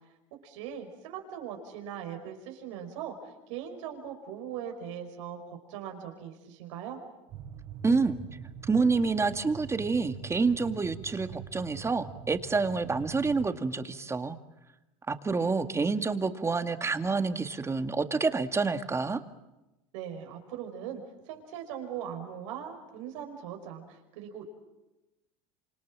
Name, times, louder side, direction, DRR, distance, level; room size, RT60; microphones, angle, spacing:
voice 1, 0.4-7.0 19.9-24.4, right 9 dB, 80° right, 4 dB, 5.5 m, -40 dB
sound 1, 7.3-13.5, right 7 dB, 50° right, 4.9 m, -44 dB
voice 2, 7.8-8.2 8.7-14.4 15.1-19.2, right 4 dB, 15° right, 9 dB, 2.0 m, -28 dB
28.0 x 26.5 x 7.6 m, 0.99 s
supercardioid pair, 110°, 16 cm